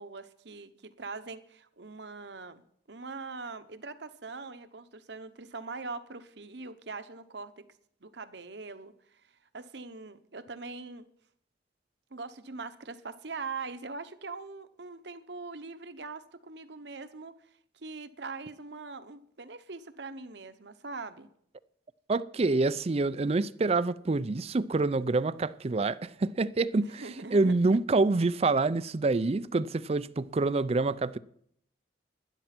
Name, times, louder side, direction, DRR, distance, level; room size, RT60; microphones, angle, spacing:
voice 1, 0.0-7.5 8.0-11.1 12.1-17.3 17.7-21.3 27.0-27.5, right 4 dB, 65° right, 1.0 m, -42 dB
voice 2, 22.1-27.0 27.3-31.2, right 3 dB, 35° right, 0.4 m, -27 dB
12.0 x 10.5 x 6.0 m
head